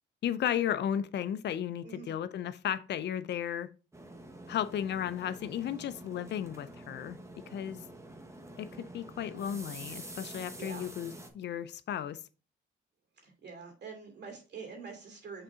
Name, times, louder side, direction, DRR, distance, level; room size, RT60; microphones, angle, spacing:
voice 1, 0.2-3.7 4.5-7.2 7.5-7.8 8.6-12.2, left 9 dB, 60° left, 0.5 m, -34 dB
voice 2, 1.8-2.1 10.6-10.9 13.2-15.4, right 5 dB, 60° right, 2.6 m, -45 dB
sound 1, 3.9-11.3, right 1 dB, 15° right, 1.0 m, -47 dB
6.6 x 3.9 x 3.6 m
cardioid pair, 90°, 20 cm